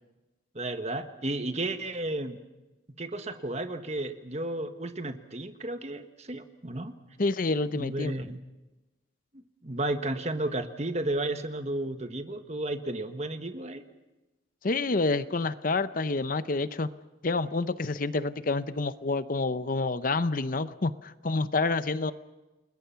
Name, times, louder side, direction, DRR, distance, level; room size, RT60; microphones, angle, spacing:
voice 1, 0.5-2.4 3.0-6.9 7.7-8.4 9.6-13.8, right 2 dB, 35° right, 8 dB, 1.4 m, -33 dB
voice 2, 7.2-8.2 14.6-16.9 17.2-22.1, left 3 dB, 45° left, 13 dB, 0.7 m, -28 dB
29.5 x 21.0 x 5.8 m, 1.1 s
head